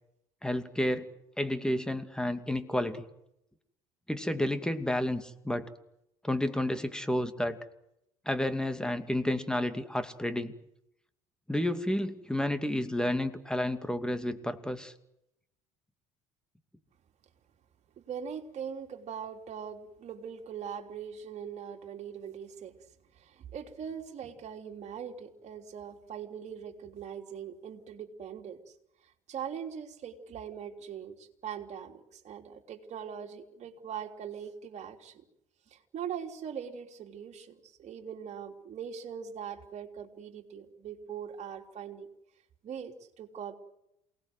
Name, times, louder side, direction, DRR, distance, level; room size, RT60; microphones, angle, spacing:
voice 1, 0.4-1.1 1.4-3.0 4.1-5.7 6.2-7.6 8.3-10.5 11.5-14.9, left 1 dB, 5° left, 9 dB, 2.5 m, -31 dB
voice 2, 18.0-22.8 23.1-28.7 29.3-35.2 35.7-42.1 42.6-43.6, right 8 dB, 50° right, 4 dB, 3.3 m, -41 dB
28.0 x 19.0 x 7.9 m, 0.82 s
hypercardioid pair, 65°, 15 cm